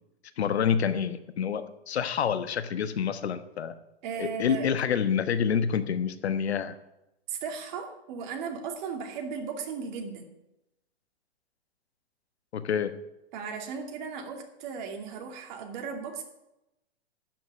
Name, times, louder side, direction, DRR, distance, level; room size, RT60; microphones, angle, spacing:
voice 1, 0.4-3.7 4.2-6.7 12.5-12.9, left 7 dB, 85° left, 11 dB, 1.3 m, -27 dB
voice 2, 4.0-4.7 7.3-10.3 13.3-16.2, right 6 dB, 45° right, 4 dB, 2.7 m, -36 dB
12.0 x 6.1 x 9.5 m, 0.92 s
hypercardioid pair, 145°, 32 cm